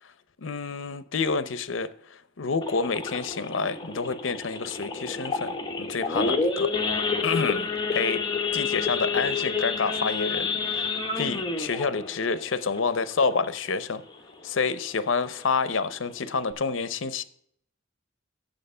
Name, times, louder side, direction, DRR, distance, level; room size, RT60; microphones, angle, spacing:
voice 1, 0.4-6.7 7.2-8.3 8.5-10.9 11.2-14.0 14.4-17.2, left 4 dB, 70° left, 0.7 m, -28 dB
Idling / Accelerating revving vroom / Sawing, 2.6-13.7 14.1-14.3 14.6-14.7 15.1-15.4 15.9-16.0 16.2-16.5, left 4 dB, 25° left, 1.1 m, -29 dB
9.1 x 7.1 x 5.5 m
head